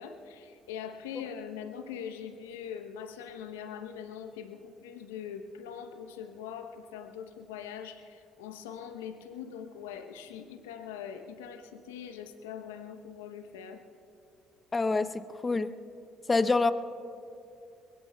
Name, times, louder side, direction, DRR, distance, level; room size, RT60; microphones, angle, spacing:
voice 1, 0.0-13.8, left 8 dB, 85° left, 6 dB, 0.9 m, -42 dB
voice 2, 14.7-15.1 15.4-15.7 16.3-16.7, left 3 dB, 25° left, 13 dB, 0.7 m, -25 dB
22.5 x 21.5 x 2.3 m, 2.6 s
hypercardioid pair, 55°, 0 cm